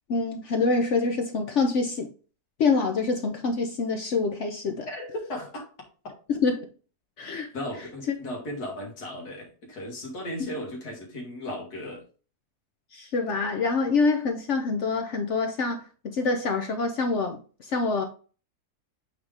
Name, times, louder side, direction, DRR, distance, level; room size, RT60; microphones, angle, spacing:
voice 1, 0.1-2.1 2.6-4.9 6.3-6.7 7.2-7.5 12.9-18.1, left 4 dB, 60° left, 0.9 m, -26 dB
voice 2, 4.9-5.7 7.5-12.0, left 1 dB, 80° left, 2.2 m, -36 dB
8.0 x 3.6 x 3.3 m
omnidirectional pair, 1.7 m